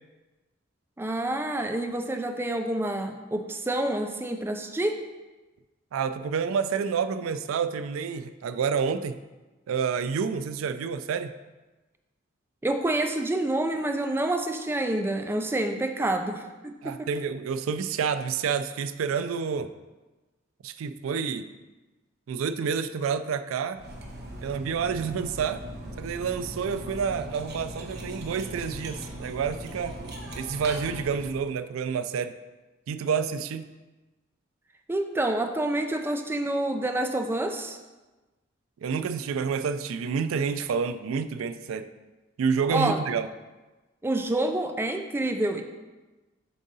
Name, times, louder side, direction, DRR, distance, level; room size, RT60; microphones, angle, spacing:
voice 1, 1.0-5.0 12.6-17.1 34.9-37.8 42.7-43.0 44.0-45.6, right 1 dB, 10° right, 6 dB, 0.3 m, -28 dB
voice 2, 5.9-9.2 9.7-11.3 16.8-19.7 20.6-21.5 22.3-23.8 24.4-25.6 26.0-30.0 30.4-32.3 32.9-33.7 38.8-41.9 42.4-43.3, right 6 dB, 85° right, 11 dB, 0.3 m, -29 dB
Cutlery silverware, 23.7-31.5, right 1 dB, 55° right, 0.9 m, -39 dB
7.4 x 3.8 x 4.0 m, 1.2 s
head